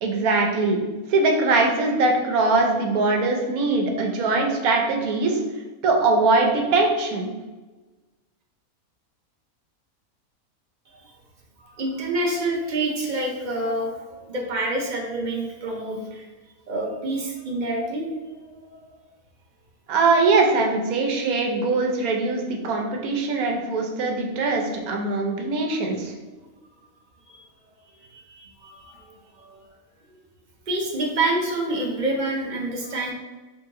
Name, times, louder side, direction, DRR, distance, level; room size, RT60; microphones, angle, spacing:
voice 1, 0.0-0.8 1.1-5.4 5.8-7.3 19.9-26.1, right 3 dB, 80° right, 2 dB, 1.2 m, -22 dB
voice 2, 11.6-16.2 16.7-18.9 27.3-27.4 28.1-29.0 29.4-29.6 30.7-33.1, right 2 dB, 50° right, 0 dB, 0.6 m, -27 dB
3.4 x 2.9 x 3.6 m, 1.2 s
omnidirectional pair, 1.5 m